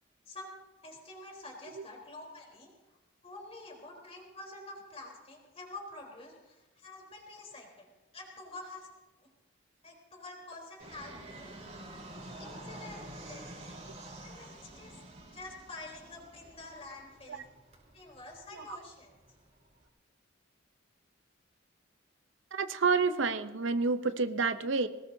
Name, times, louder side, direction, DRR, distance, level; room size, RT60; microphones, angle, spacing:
voice 1, 0.8-3.0 3.2-8.9 9.2-9.3 9.8-11.5 12.4-13.5 14.2-14.5 14.8-15.0 15.3-17.5 17.9-19.1, left 2 dB, 30° left, 0 dB, 3.7 m, -48 dB
Fixed-wing aircraft airplane, 10.8-19.8, right 1 dB, 35° right, 3.5 m, -49 dB
voice 2, 22.5-24.9, right 4 dB, 70° right, 10 dB, 0.7 m, -28 dB
21.5 x 19.0 x 2.7 m, 1.1 s
head